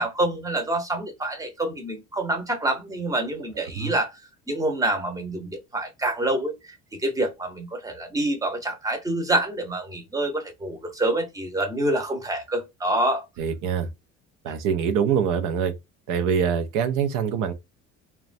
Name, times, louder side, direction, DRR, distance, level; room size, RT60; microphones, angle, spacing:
voice 1, 0.0-4.1 4.5-6.5 7.0-13.2, right 1 dB, 10° right, 0.8 m, -26 dB
voice 2, 13.4-13.9 14.4-15.7 16.1-17.5, right 7 dB, 70° right, 0.5 m, -24 dB
2.9 x 2.3 x 2.5 m
supercardioid pair, 95°, 32 cm